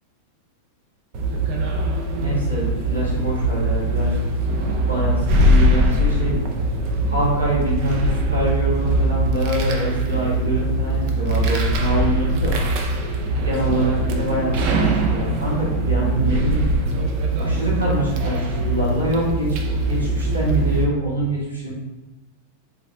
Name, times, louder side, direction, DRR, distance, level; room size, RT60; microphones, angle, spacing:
sound 1, 1.1-20.8, right 1 dB, 45° right, 0.5 m, -21 dB
voice 1, 2.2-4.1 4.9-6.4 7.1-12.6 13.4-16.7 17.4-21.7, right 1 dB, 85° right, -7 dB, 1.2 m, -25 dB
4.0 x 3.2 x 2.3 m, 1.0 s
figure-of-eight pair, 90°, 0 cm